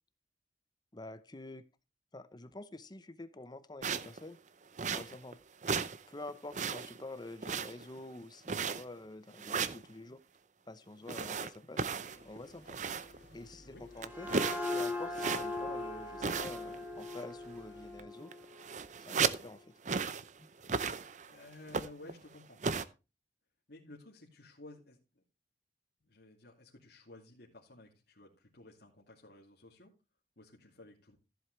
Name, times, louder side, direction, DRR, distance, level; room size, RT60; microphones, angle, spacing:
voice 1, 0.9-1.6 2.1-4.4 4.9-5.4 6.1-10.2 10.7-11.9 12.2-12.8 13.3-14.3 14.7-18.3 19.0-19.7 20.4-20.5 20.9-21.0, left 2 dB, 25° left, 13 dB, 0.8 m, -48 dB
sound 1, 3.8-4.2 4.8-5.3 5.6-6.0 6.3-7.0 7.4-8.0 8.5-9.0 9.4-9.8 11.1-13.2 13.5-13.6 14.0-15.7 16.2-16.8 17.0-17.3 18.0-18.1 18.3-19.5 19.8-20.3 20.6-21.3 21.7-22.1 22.6-22.8, right 5 dB, 40° right, 0.6 m, -35 dB
sound 2, 12.1-18.1, left 1 dB, 80° left, 3.5 m, -59 dB
sound 3, 13.7-19.2, left 2 dB, 10° right, 1.9 m, -40 dB
voice 2, 21.3-22.6 23.7-25.2 26.0-29.9 30.4-31.2, left 2 dB, 60° left, -4 dB, 2.6 m, -54 dB
15.0 x 7.8 x 3.2 m, 0.29 s
head